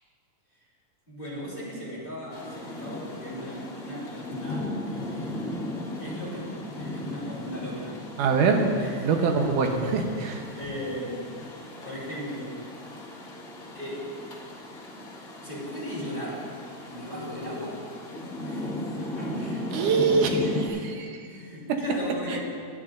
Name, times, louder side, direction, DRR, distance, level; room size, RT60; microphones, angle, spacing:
voice 1, 1.1-5.7 6.0-8.0 8.7-9.5 10.6-11.4 11.8-12.6 13.7-14.1 15.4-16.5 16.8-17.8 18.4-20.0 20.7-20.9 21.2-22.4, left 1 dB, 15° left, -7 dB, 3.4 m, -37 dB
Rain, 2.3-20.7, left 1 dB, 35° left, 1.6 m, -37 dB
voice 2, 8.2-10.4 19.7-21.2 22.3-22.4, right 4 dB, 75° right, 3 dB, 2.5 m, -24 dB
19.0 x 11.5 x 2.6 m, 2.2 s
omnidirectional pair, 3.8 m